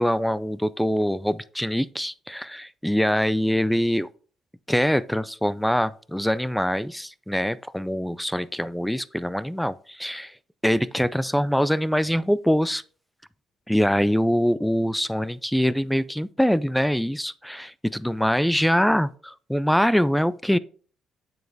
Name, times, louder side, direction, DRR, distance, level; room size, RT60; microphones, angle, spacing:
voice 1, 0.0-4.1 4.7-10.3 10.6-12.8 13.7-20.6, equal, ahead, 0.3 m, -24 dB
7.8 x 7.1 x 2.6 m
cardioid pair, 100°, 0 cm